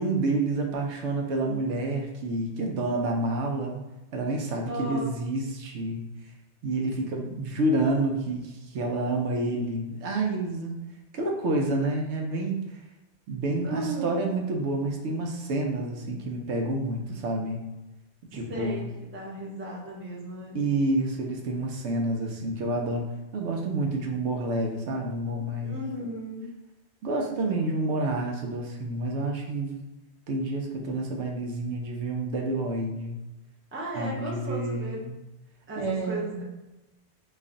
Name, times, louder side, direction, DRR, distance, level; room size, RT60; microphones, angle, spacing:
voice 1, 0.0-3.8 4.1-6.0 6.6-10.8 11.1-12.6 13.3-17.6 18.3-18.9 20.5-23.1 23.3-25.7 27.0-29.7 30.3-33.2 33.9-35.1 35.7-36.4, right 2 dB, 80° right, 1 dB, 0.9 m, -29 dB
voice 2, 4.6-5.1 13.6-14.3 18.3-20.6 25.6-26.5 33.7-35.0 35.7-36.4, right 1 dB, 15° right, -4 dB, 0.5 m, -35 dB
3.1 x 2.4 x 3.7 m, 1.0 s
omnidirectional pair, 1.2 m